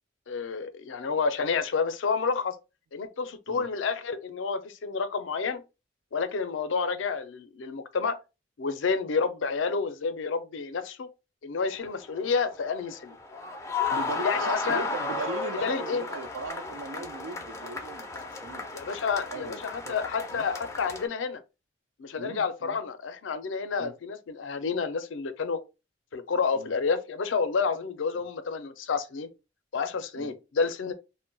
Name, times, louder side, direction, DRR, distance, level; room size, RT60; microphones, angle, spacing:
voice 1, 0.3-2.6 2.9-5.6 6.1-8.2 8.6-11.1 11.4-13.2 14.2-14.8 15.6-16.0 18.7-21.4 22.0-25.6 26.1-29.3 29.7-30.9, left 5 dB, 80° left, 0.4 m, -29 dB
sound 1, 11.7-21.1, left 4 dB, 15° left, 0.3 m, -34 dB
voice 2, 13.9-18.7 19.3-20.0 20.3-20.4 22.2-22.8 23.8-23.9 26.5-26.7 30.2-30.4, right 4 dB, 85° right, 0.4 m, -39 dB
2.2 x 2.1 x 3.8 m
head